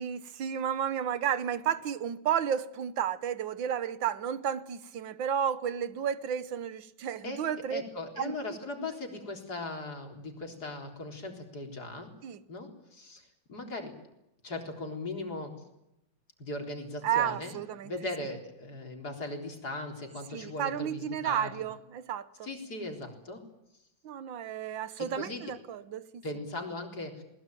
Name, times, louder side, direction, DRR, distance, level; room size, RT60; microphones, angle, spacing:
voice 1, 0.0-7.8 8.2-8.4 12.2-12.4 17.0-17.9 20.3-22.3 24.0-26.2, right 9 dB, 75° right, 1.8 m, -32 dB
voice 2, 7.7-12.1 12.5-13.9 14.4-15.5 16.4-21.5 22.4-23.4 25.0-25.4 26.2-27.2, left 2 dB, 55° left, 4.4 m, -39 dB
21.5 x 20.0 x 9.3 m
omnidirectional pair, 2.1 m